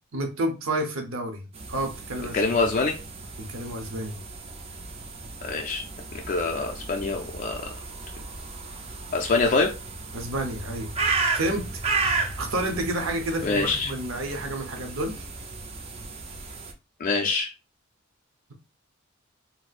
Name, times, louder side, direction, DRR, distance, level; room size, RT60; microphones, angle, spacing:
voice 1, 0.1-2.6 3.4-4.1 10.1-11.7 12.4-15.3, right 1 dB, 80° right, 0.8 m, -30 dB
sound 1, 1.5-16.7, right 3 dB, 30° right, 0.4 m, -33 dB
voice 2, 2.3-2.9 5.4-5.8 6.1-7.6 9.1-9.7 13.4-13.9 17.0-17.5, left 3 dB, 40° left, 0.3 m, -25 dB
4.1 x 2.0 x 2.4 m
head